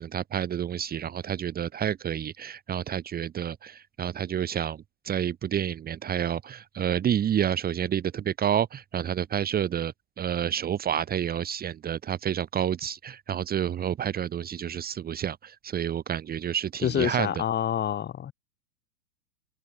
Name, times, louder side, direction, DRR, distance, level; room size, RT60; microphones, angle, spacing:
voice 1, 0.0-17.3, right 9 dB, 20° right, 2.4 m, -29 dB
voice 2, 16.8-18.3, left 10 dB, 20° left, 5.4 m, -27 dB
hypercardioid pair, 135°, 50 cm